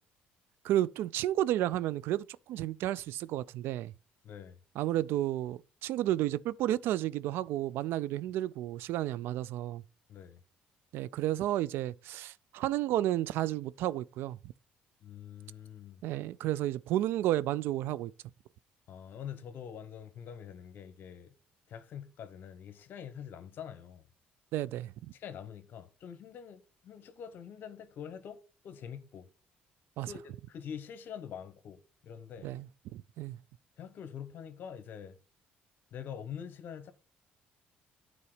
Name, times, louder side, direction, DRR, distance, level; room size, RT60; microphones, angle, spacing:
voice 1, 0.6-3.9 4.8-9.8 10.9-14.4 16.0-18.1 24.5-24.9 30.0-30.1 32.4-32.7 32.9-33.4, right 13 dB, 80° right, 0.3 m, -32 dB
voice 2, 4.2-4.6 10.1-10.4 15.0-16.0 18.9-21.3 21.7-24.1 25.1-29.3 30.0-32.5 33.8-35.2 35.9-36.9, left 8 dB, 60° left, 1.0 m, -45 dB
8.5 x 4.0 x 4.9 m
cardioid pair, 90°, 4 cm